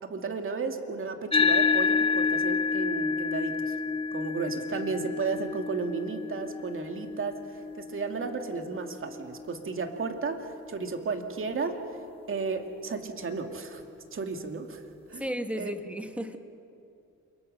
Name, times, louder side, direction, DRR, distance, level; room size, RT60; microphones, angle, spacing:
voice 1, 0.0-3.7 4.1-12.0 12.3-13.8 14.1-14.8 15.1-15.7, right 4 dB, 45° right, 5 dB, 2.6 m, -34 dB
sound 1, 1.3-10.0, left 5 dB, 20° left, 1.2 m, -29 dB
voice 2, 15.1-16.4, equal, 5° right, 6 dB, 2.0 m, -34 dB
28.5 x 23.5 x 6.7 m, 2.6 s
cardioid pair, 90°, 30 cm